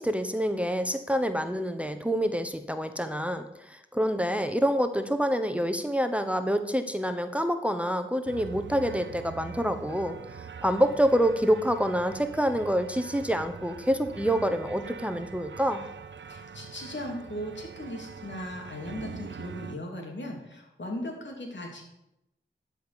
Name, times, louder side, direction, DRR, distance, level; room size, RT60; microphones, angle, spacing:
voice 1, 0.0-15.8, equal, 5° right, 7 dB, 0.9 m, -27 dB
sound 1, 8.3-19.8, right 6 dB, 75° right, 0.6 m, -43 dB
voice 2, 16.2-21.9, left 1 dB, 70° left, 0 dB, 2.8 m, -38 dB
12.0 x 5.4 x 6.9 m, 0.85 s
cardioid pair, 40°, 19 cm